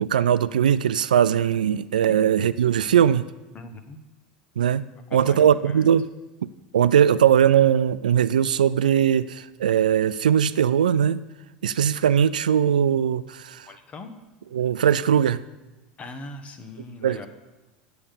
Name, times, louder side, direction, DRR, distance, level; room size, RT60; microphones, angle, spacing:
voice 1, 0.0-3.3 4.6-4.8 5.1-6.1 6.7-11.2 11.6-13.7 14.5-15.4 17.0-17.3, right 9 dB, 85° right, 15 dB, 0.3 m, -20 dB
voice 2, 3.5-4.0 5.1-5.9 13.7-14.1 16.0-17.3, left 3 dB, 30° left, 7 dB, 1.3 m, -40 dB
8.8 x 7.0 x 6.8 m, 1.1 s
hypercardioid pair, 85°, 4 cm